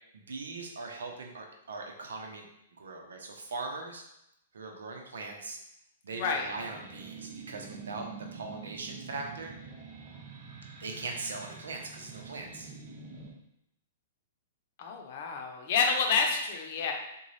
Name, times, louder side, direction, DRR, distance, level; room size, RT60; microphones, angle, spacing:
voice 1, 0.1-2.5 2.8-4.1 4.5-5.6 6.0-9.5 10.8-12.7, right 3 dB, 85° right, 2 dB, 0.7 m, -40 dB
sound 1, 6.4-13.3, right 5 dB, 30° right, 0.7 m, -46 dB
voice 2, 14.8-16.9, left 5 dB, 50° left, 2 dB, 0.7 m, -28 dB
3.8 x 2.3 x 3.2 m, 0.82 s
hypercardioid pair, 140°, 0 cm